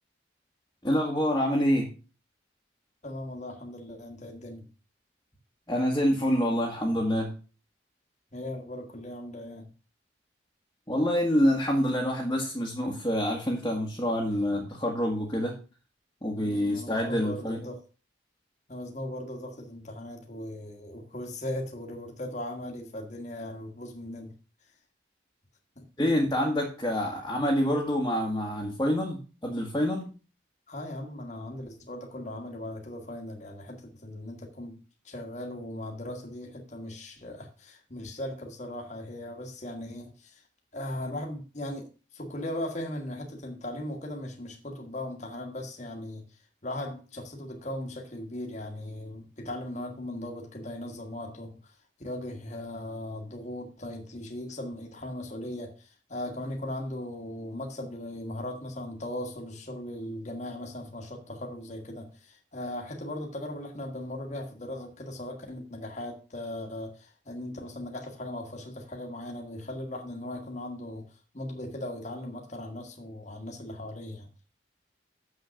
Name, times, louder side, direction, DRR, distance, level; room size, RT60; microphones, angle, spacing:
voice 1, 0.8-1.9 5.7-7.3 10.9-15.5 16.2-17.7 26.0-30.1, equal, 20° left, -2 dB, 1.6 m, -27 dB
voice 2, 3.0-4.7 8.3-9.7 16.4-17.8 18.7-24.3 25.8-25.9 30.7-34.8 35.0-40.4 40.7-41.9 42.1-46.2 46.6-51.5 52.0-71.0 71.3-74.3, left 1 dB, 40° left, 1 dB, 1.6 m, -38 dB
7.2 x 6.5 x 6.3 m, 0.36 s
head